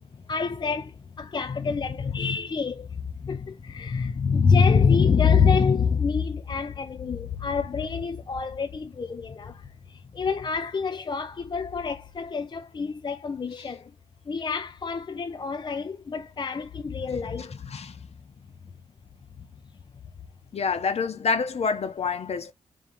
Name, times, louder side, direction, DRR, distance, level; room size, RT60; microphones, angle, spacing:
voice 1, 0.3-13.9 14.3-17.8, left 5 dB, 40° left, 0.5 m, -26 dB
voice 2, 20.5-22.5, left 5 dB, 55° left, 0.9 m, -27 dB
3.6 x 2.7 x 4.5 m
supercardioid pair, 45°, 13 cm